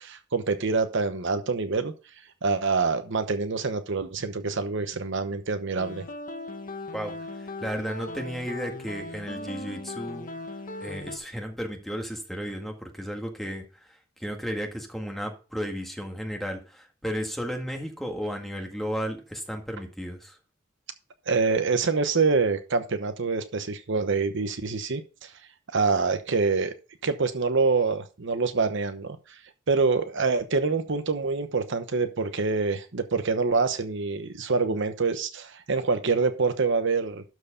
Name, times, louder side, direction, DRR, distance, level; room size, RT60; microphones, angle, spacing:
voice 1, 0.0-1.9 2.4-6.0 21.3-25.3 25.7-26.7 27.0-29.4 29.7-37.2, right 4 dB, 60° right, 9 dB, 0.9 m, -26 dB
sound 1, 5.8-11.2, left 2 dB, 40° left, 0.9 m, -38 dB
voice 2, 6.9-10.3 10.8-20.4, equal, ahead, 2 dB, 1.8 m, -34 dB
12.5 x 4.8 x 5.1 m, 0.33 s
head